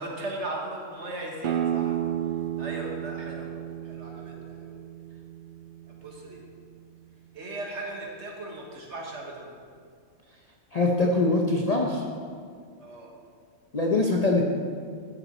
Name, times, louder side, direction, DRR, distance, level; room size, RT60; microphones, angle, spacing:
voice 1, 0.0-2.0 2.6-3.5 3.8-4.8 5.9-6.4 7.3-9.5 12.8-13.1, right 2 dB, 55° right, -1 dB, 1.7 m, -37 dB
sound 1, 1.4-6.8, right 10 dB, 75° right, 0.5 m, -33 dB
voice 2, 10.7-12.0 13.7-14.4, left 2 dB, 40° left, -1 dB, 0.6 m, -23 dB
12.0 x 7.0 x 4.3 m, 2.1 s
omnidirectional pair, 1.4 m